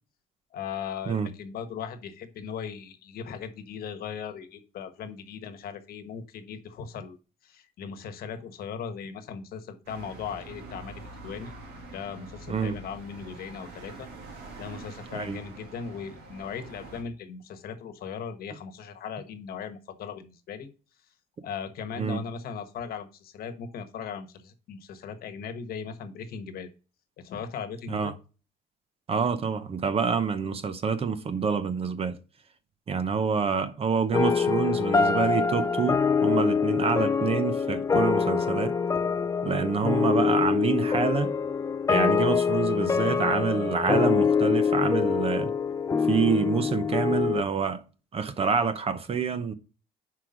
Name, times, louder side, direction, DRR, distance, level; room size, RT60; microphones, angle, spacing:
voice 1, 0.5-7.2 7.4-11.5 11.9-14.1 14.6-20.7 21.4-26.7 27.2-28.1, left 6 dB, 65° left, 1.2 m, -38 dB
sound 1, 9.9-17.0, right 3 dB, 80° right, 2.3 m, -45 dB
voice 2, 29.1-32.2 32.9-38.7 39.4-41.3 41.9-45.5 46.0-47.8 48.1-49.5, right 5 dB, 35° right, 0.8 m, -27 dB
sound 2, 34.1-47.4, left 5 dB, 20° left, 0.4 m, -25 dB
5.7 x 4.7 x 5.0 m
cardioid pair, 110°, 17 cm